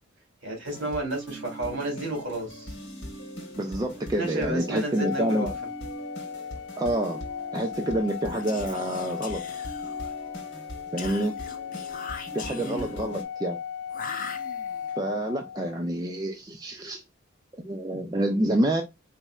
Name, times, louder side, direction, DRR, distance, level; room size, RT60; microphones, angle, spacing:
voice 1, 0.4-2.7 4.1-5.5 12.6-12.9, right 1 dB, 60° right, 2.5 m, -32 dB
sound 1, 0.6-13.2, equal, 60° left, 1.5 m, -40 dB
voice 2, 3.5-5.5 6.8-7.3 7.5-9.4 10.9-11.3 12.3-13.6 15.0-17.0 17.6-18.8, right 1 dB, 20° right, 0.5 m, -28 dB
Organ, 5.0-15.8, left 8 dB, 75° left, 0.3 m, -37 dB
Whispering, 8.3-10.2 11.0-13.0 13.9-14.9, left 5 dB, 40° left, 0.7 m, -40 dB
4.0 x 3.2 x 2.3 m
head